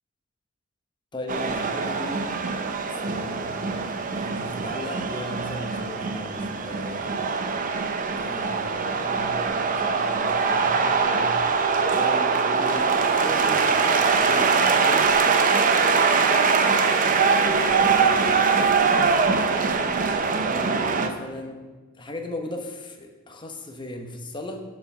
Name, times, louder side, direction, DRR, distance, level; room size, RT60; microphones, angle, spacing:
voice 1, 1.1-2.2 3.0-3.5 4.1-7.1 8.2-9.5 9.8-11.3 12.0-15.1 17.7-18.0 19.3-20.0 20.4-21.6 22.0-24.6, left 1 dB, 20° left, 3 dB, 0.9 m, -37 dB
sound 1, 1.3-21.1, right 5 dB, 40° right, 0.6 m, -22 dB
7.7 x 5.8 x 6.6 m, 1.3 s
head